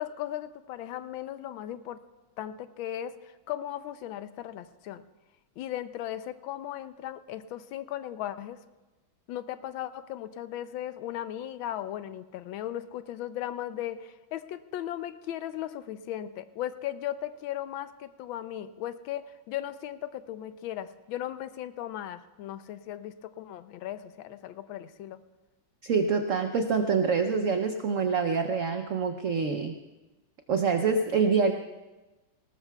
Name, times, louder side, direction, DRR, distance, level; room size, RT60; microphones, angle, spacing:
voice 1, 0.0-2.0 2.4-5.0 5.6-8.6 9.3-25.2, left 12 dB, 80° left, 12 dB, 1.4 m, -37 dB
voice 2, 25.8-29.8 30.5-31.5, right 5 dB, 85° right, 6 dB, 0.7 m, -26 dB
19.0 x 18.5 x 2.3 m, 1.1 s
omnidirectional pair, 2.2 m